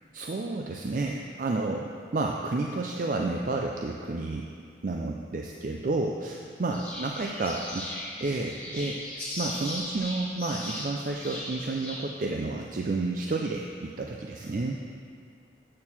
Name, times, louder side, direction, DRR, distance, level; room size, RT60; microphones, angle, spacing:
voice 1, 0.1-4.5 4.8-7.9 8.2-9.0 9.4-14.8, right 3 dB, 45° right, 1 dB, 0.4 m, -31 dB
sound 1, 6.7-12.0, left 1 dB, 10° left, 2.2 m, -38 dB
8.5 x 4.5 x 7.1 m, 2.3 s
head